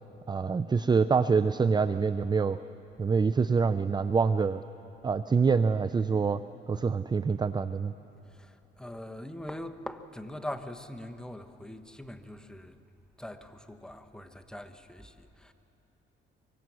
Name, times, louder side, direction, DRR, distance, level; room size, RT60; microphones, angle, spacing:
voice 1, 0.3-2.6 3.0-4.6 5.0-6.4 6.7-7.9, right 5 dB, 20° right, 0.4 m, -25 dB
voice 2, 8.3-12.8 13.2-15.5, left 1 dB, 5° left, 1.2 m, -42 dB
24.0 x 23.5 x 6.3 m
cardioid pair, 90°, 20 cm